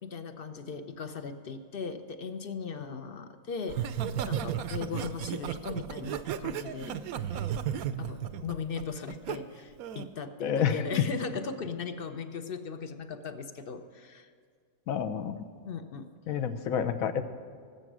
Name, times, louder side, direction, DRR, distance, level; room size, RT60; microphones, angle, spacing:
voice 1, 0.0-3.8 4.3-6.9 7.3-7.4 8.0-14.3 15.7-16.1, left 5 dB, 50° left, 9 dB, 0.8 m, -38 dB
Laughter, 3.7-9.4 9.8-10.1, right 9 dB, 75° right, 1.1 m, -34 dB
voice 2, 10.4-10.8 14.9-15.4 16.3-17.2, left 8 dB, 70° left, 10 dB, 1.2 m, -29 dB
19.0 x 7.9 x 6.2 m, 2.1 s
omnidirectional pair, 1.6 m